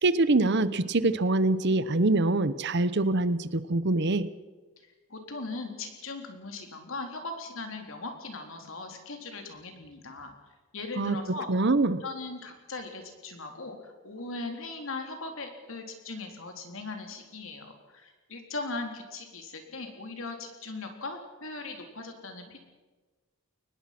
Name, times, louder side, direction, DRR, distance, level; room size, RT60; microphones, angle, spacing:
voice 1, 0.0-4.3 11.0-11.2 11.5-12.0, right 2 dB, 55° right, 14 dB, 0.9 m, -24 dB
voice 2, 4.8-10.3 10.7-11.5 11.9-22.6, left 3 dB, 65° left, 4 dB, 3.7 m, -39 dB
23.5 x 20.0 x 6.0 m, 1.3 s
head